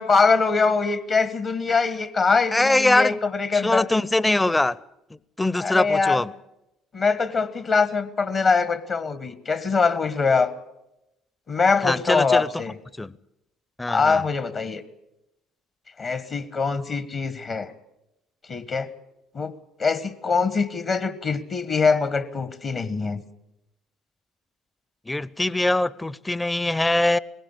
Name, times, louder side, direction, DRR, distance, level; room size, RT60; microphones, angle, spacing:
voice 1, 0.0-3.9 5.6-6.2 6.9-10.5 11.5-12.7 13.9-14.8 16.0-17.7 18.5-18.9 19.3-19.5 19.8-23.2, left 4 dB, 45° left, 14 dB, 1.3 m, -23 dB
voice 2, 2.5-3.2 3.5-4.8 5.4-6.3 11.8-12.5 13.0-13.1 13.8-14.2 25.1-27.2, left 2 dB, 15° left, 21 dB, 0.7 m, -22 dB
19.5 x 16.5 x 8.5 m, 0.88 s
hypercardioid pair, 55°, 0 cm